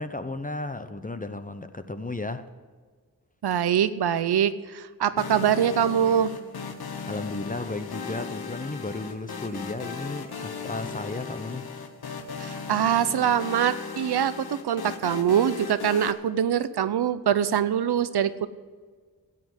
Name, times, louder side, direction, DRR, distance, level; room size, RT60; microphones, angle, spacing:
voice 1, 0.0-2.5 7.1-11.7, left 2 dB, 20° left, 0.8 m, -34 dB
voice 2, 3.4-6.3 12.4-18.5, right 9 dB, 85° right, 0.7 m, -24 dB
sound 1, 5.2-16.1, left 5 dB, 75° left, 1.1 m, -37 dB
12.5 x 8.6 x 7.9 m
cardioid pair, 50°, 38 cm